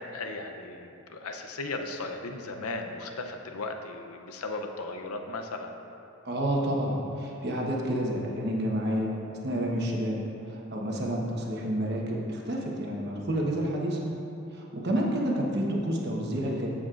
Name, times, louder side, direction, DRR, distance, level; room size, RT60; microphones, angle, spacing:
voice 1, 0.1-5.8, left 3 dB, 85° left, 5 dB, 0.6 m, -36 dB
voice 2, 6.2-9.1 9.4-10.2 10.5-14.0 14.5-16.7, right 1 dB, 50° right, -2 dB, 1.1 m, -29 dB
14.0 x 6.3 x 2.5 m, 2.8 s
head